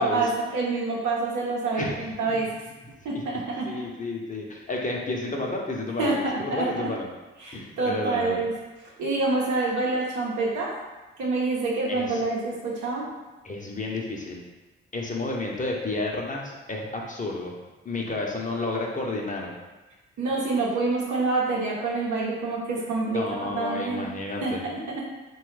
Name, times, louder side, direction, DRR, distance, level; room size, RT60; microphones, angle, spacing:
voice 1, 0.0-2.5 3.0-3.8 6.0-6.9 7.4-8.5 9.0-10.7 11.2-13.1 20.2-24.0 24.4-25.0, right 3 dB, 85° right, -4 dB, 0.8 m, -27 dB
voice 2, 1.8-2.4 3.1-3.2 3.6-7.1 7.5-8.4 11.9-12.2 13.4-14.4 14.9-17.5 17.8-19.5 23.1-24.6, left 2 dB, 25° left, -1 dB, 0.7 m, -31 dB
3.1 x 2.3 x 3.2 m, 1.1 s
supercardioid pair, 45°, 29 cm